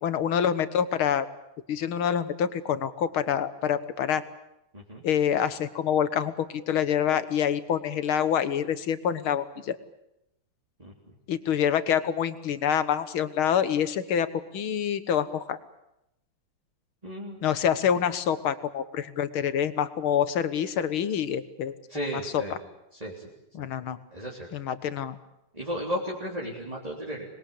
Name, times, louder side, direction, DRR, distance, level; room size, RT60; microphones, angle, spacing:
voice 1, 0.0-1.3 1.7-4.2 5.0-9.8 11.3-14.3 14.5-15.6 17.4-22.4 23.5-24.0 24.5-25.2, left 8 dB, 75° left, 12 dB, 2.1 m, -26 dB
voice 2, 17.0-17.4 21.9-22.6 23.0-23.1 24.1-24.5 25.5-27.3, equal, 15° right, -3 dB, 3.7 m, -34 dB
26.0 x 21.0 x 8.5 m, 0.87 s
omnidirectional pair, 2.3 m